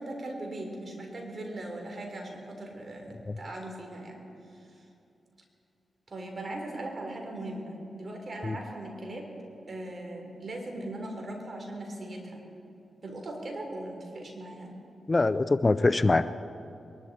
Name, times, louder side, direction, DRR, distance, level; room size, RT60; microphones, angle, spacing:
voice 1, 0.0-4.2 4.5-4.8 6.1-9.3 9.7-12.4 13.0-14.8, right 1 dB, 50° right, 2 dB, 3.7 m, -39 dB
voice 2, 15.1-16.4, left 3 dB, 35° left, 13 dB, 0.5 m, -24 dB
23.0 x 12.0 x 4.3 m, 2.7 s
supercardioid pair, 40°, 0 cm